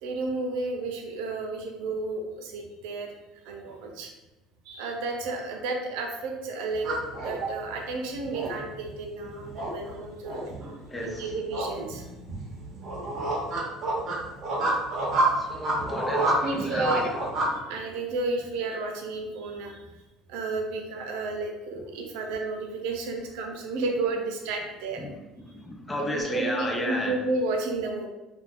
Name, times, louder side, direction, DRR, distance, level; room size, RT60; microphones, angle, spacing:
voice 1, 0.0-3.1 3.4-4.1 4.7-6.9 7.1-10.4 11.0-12.0 16.4-17.1 17.7-19.8 20.3-25.0 26.0-28.1, right 3 dB, 90° right, 2 dB, 0.6 m, -32 dB
sound 1, 6.7-17.5, right 2 dB, 35° right, 0.7 m, -29 dB
voice 2, 10.9-11.3 15.4-17.1 17.5-17.6 25.0-25.1 25.6-27.2, left 1 dB, 10° left, 1 dB, 0.4 m, -32 dB
2.4 x 2.2 x 3.4 m, 1.0 s
cardioid pair, 170°, 0 cm